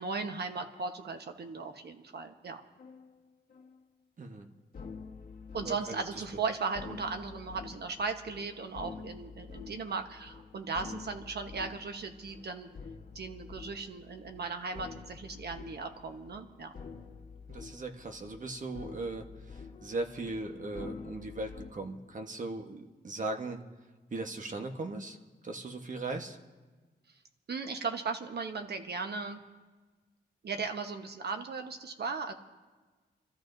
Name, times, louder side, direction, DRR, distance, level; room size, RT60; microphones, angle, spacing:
voice 1, 0.0-2.6 5.5-12.7 13.1-16.7 27.5-29.4 30.4-32.3, right 4 dB, 65° right, 6 dB, 1.1 m, -37 dB
sound 1, 2.8-3.1 3.5-3.8 4.7-21.7, left 5 dB, 55° left, 1.5 m, -48 dB
voice 2, 5.6-6.0 17.5-23.6 24.1-25.2 25.4-26.4, right 2 dB, 45° right, 4 dB, 1.2 m, -38 dB
28.0 x 13.5 x 2.7 m, 1.3 s
wide cardioid pair, 95°, 18 cm